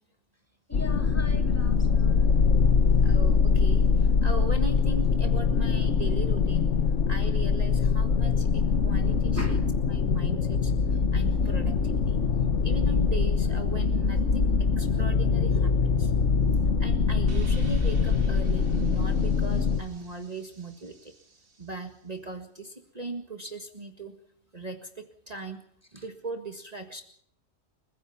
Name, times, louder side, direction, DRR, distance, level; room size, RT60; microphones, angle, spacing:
sound 1, 0.7-19.8, left 5 dB, 70° left, 1.5 m, -23 dB
voice 1, 0.7-3.2 7.0-7.1 9.3-9.7 25.9-26.1, left 1 dB, 10° left, 4 dB, 2.8 m, -41 dB
voice 2, 3.0-6.7 7.1-9.6 9.9-12.2 12.6-14.5 14.8-16.1 16.8-21.1 21.6-24.1 24.5-25.6 25.9-27.0, right 3 dB, 30° right, 5 dB, 1.9 m, -38 dB
sound 2, 17.3-21.0, right 1 dB, 45° right, 2.3 m, -37 dB
30.0 x 15.5 x 5.8 m, 0.68 s
omnidirectional pair, 1.3 m